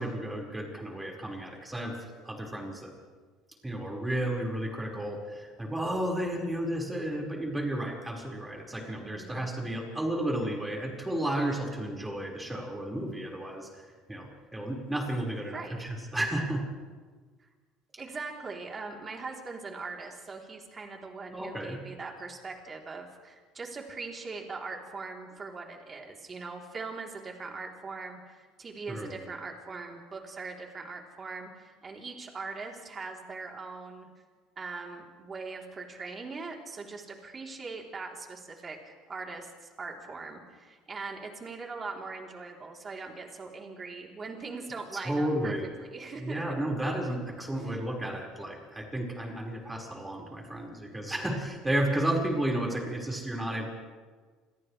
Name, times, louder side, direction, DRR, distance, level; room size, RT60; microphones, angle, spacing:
voice 1, 0.0-1.9 2.2-2.9 3.6-16.6 21.3-21.8 28.9-29.2 44.9-45.7 46.2-53.7, right 1 dB, 10° right, -1 dB, 5.1 m, -32 dB
voice 2, 8.8-9.5 15.5-15.9 18.0-34.1 34.6-45.5 45.8-46.4 47.6-47.7 53.2-53.3, right 4 dB, 25° right, 0 dB, 3.5 m, -41 dB
29.5 x 28.0 x 3.4 m, 1.5 s
cardioid pair, 145°, 0 cm